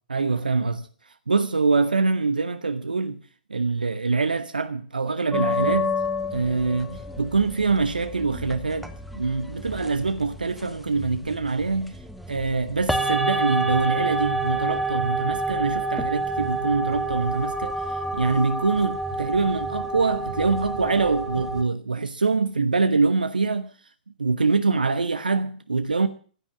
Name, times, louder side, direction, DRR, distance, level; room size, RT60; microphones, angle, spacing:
voice 1, 0.1-0.9 1.3-3.2 3.5-5.9 6.3-12.0 12.3-17.8 18.1-23.7 24.2-26.1, right 4 dB, 75° right, 1.0 m, -24 dB
sound 1, 5.3-21.6, right 1 dB, ahead, 1.2 m, -29 dB
15.5 x 9.8 x 7.2 m
figure-of-eight pair, 110°, 5 cm